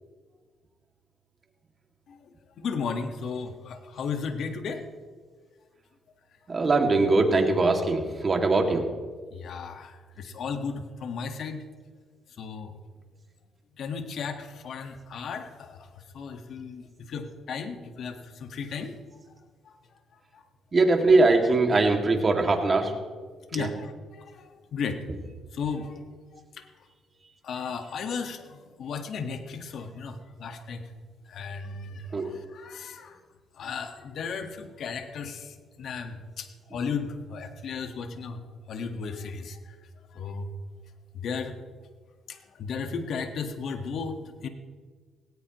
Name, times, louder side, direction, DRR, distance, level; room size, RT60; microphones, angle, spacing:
voice 1, 2.6-4.8 9.3-11.6 12.4-12.8 13.8-15.9 16.1-18.9 19.6-19.7 20.3-20.4 20.8-21.0 23.5-25.0 25.5-26.0 26.3-26.6 27.4-30.8 31.3-33.2 33.6-39.7 40.1-40.5 41.1-41.6 42.3-44.5, left 5 dB, 65° left, 6 dB, 1.6 m, -35 dB
voice 2, 6.5-8.8 20.7-22.9 23.6-23.7 32.1-32.2, right 3 dB, 35° right, 3 dB, 2.3 m, -21 dB
18.5 x 18.0 x 3.1 m, 1.5 s
cardioid pair, 90°, 0 cm